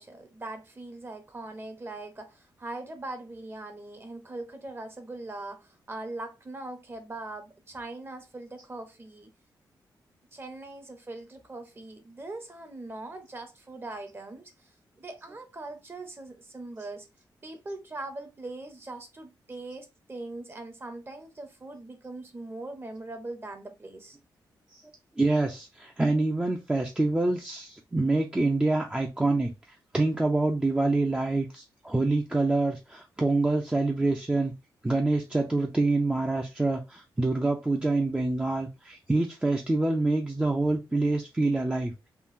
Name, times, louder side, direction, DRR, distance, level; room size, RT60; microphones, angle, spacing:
voice 1, 0.0-9.3 10.3-17.1 17.4-24.2, right 2 dB, 30° right, 0.9 m, -41 dB
voice 2, 25.2-29.5 29.9-34.5 34.8-42.1, right 2 dB, 15° right, 0.5 m, -26 dB
3.8 x 2.3 x 2.6 m
cardioid pair, 80°, 8 cm